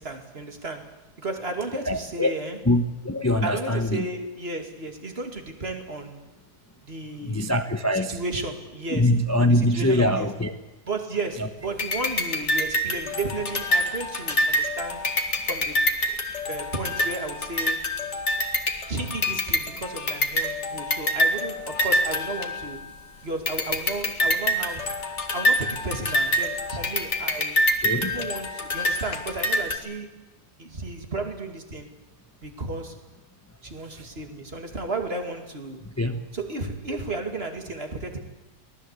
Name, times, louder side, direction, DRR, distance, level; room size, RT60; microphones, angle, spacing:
voice 1, 0.0-2.6 3.4-6.2 6.8-7.5 8.1-9.1 9.4-10.3 10.9-15.1 15.4-15.8 16.5-17.9 18.9-22.8 23.2-25.0 25.3-27.6 27.9-30.1 30.6-31.9 32.4-33.0 33.6-35.8 36.3-38.2, right 2 dB, 35° right, 5 dB, 2.6 m, -33 dB
voice 2, 1.9-2.3 2.6-4.0 7.2-8.2 8.9-10.5 27.8-28.1 33.9-34.1 36.0-36.2, left 1 dB, 10° left, 7 dB, 0.8 m, -23 dB
sound 1, 11.8-23.0 23.5-29.8, left 1 dB, 45° left, 2.3 m, -26 dB
24.5 x 18.5 x 8.3 m, 1.1 s
omnidirectional pair, 1.8 m